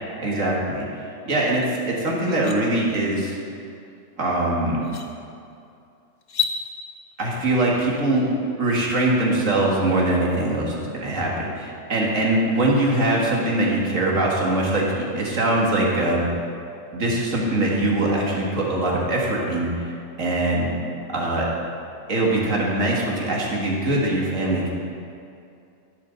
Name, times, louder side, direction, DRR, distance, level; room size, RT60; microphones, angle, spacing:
voice 1, 0.2-3.4 4.2-4.8 7.2-8.3 8.6-16.3 16.9-19.9 20.2-20.7 21.1-21.5 22.1-24.7, right 1 dB, 85° right, -3 dB, 2.4 m, -22 dB
sound 1, 1.6-1.7 2.1-2.6 4.2-4.3 4.8-5.1 6.2-6.6, left 6 dB, 40° left, 0.8 m, -28 dB
13.5 x 11.5 x 4.0 m, 2.6 s
omnidirectional pair, 1.3 m